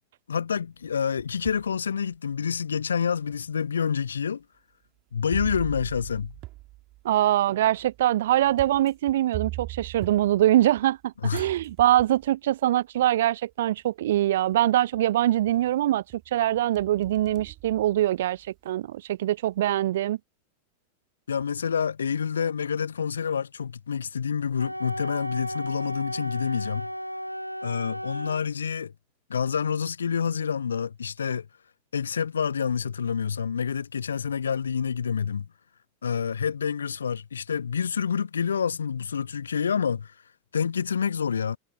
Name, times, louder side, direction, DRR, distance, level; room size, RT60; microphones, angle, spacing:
voice 1, 0.3-4.4 5.1-6.3 11.2-11.5 21.3-26.9 27.6-28.9 29.3-31.5 31.9-35.5 36.0-40.1 40.5-41.6, left 7 dB, 70° left, 0.8 m, -28 dB
sound 1, 0.8-1.7 2.3-2.4 3.3-3.4 5.3-11.0 11.3-12.4 13.5-13.6 14.1-14.6 14.9-15.7 16.1-18.5, right 18 dB, 40° right, 3.0 m, -41 dB
voice 2, 7.0-16.0 16.3-20.2, right 13 dB, 60° right, 0.3 m, -23 dB
Wind instrument woodwind instrument, 24.6-28.4, equal, 90° right, 2.9 m, -34 dB
figure-of-eight pair, 90°, 0 cm